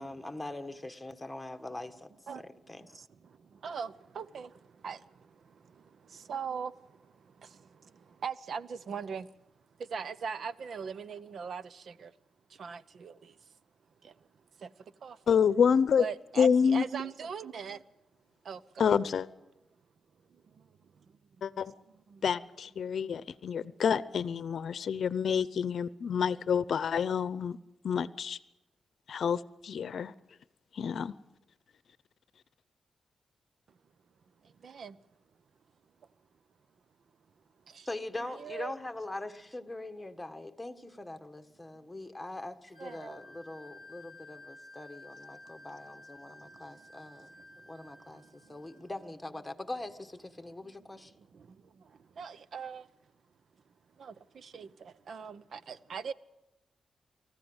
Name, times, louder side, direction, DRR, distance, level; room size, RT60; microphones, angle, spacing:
voice 1, 0.0-3.0 37.8-47.3 47.7-51.1, left 2 dB, 10° left, 1.6 m, -42 dB
voice 2, 3.0-9.3 9.8-12.1 12.5-13.4 14.0-14.3 14.6-15.2 16.0-17.8 18.4-19.0 20.3-20.7 20.9-21.1 22.1-22.2 23.7-23.8 34.4-35.0 37.7-37.9 38.3-38.7 42.8-43.2 46.5-46.7 47.0-48.8 50.6-52.9 54.0-56.1, right 6 dB, 70° right, 0.8 m, -42 dB
voice 3, 15.3-16.0 16.4-16.8 18.8-19.3 21.4-21.7 22.2-27.6 27.8-28.4 29.1-30.1 30.7-31.1, left 7 dB, 70° left, 0.7 m, -28 dB
Wind instrument woodwind instrument, 42.7-48.9, left 2 dB, 15° right, 5.7 m, -53 dB
25.0 x 14.5 x 8.1 m
cardioid pair, 70°, 0 cm